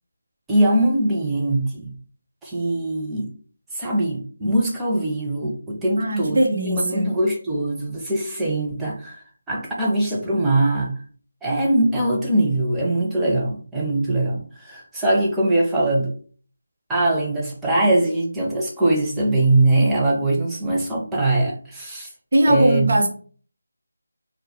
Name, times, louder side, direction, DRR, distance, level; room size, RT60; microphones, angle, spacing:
voice 1, 0.5-1.9 2.4-3.3 3.7-11.0 11.4-16.1 16.9-22.1 22.5-22.9, right 1 dB, 5° right, -4 dB, 0.4 m, -22 dB
voice 2, 6.0-7.1 22.3-23.1, right 1 dB, 45° right, 0 dB, 0.7 m, -19 dB
2.2 x 2.1 x 3.5 m, 0.42 s
figure-of-eight pair, 160°, 0 cm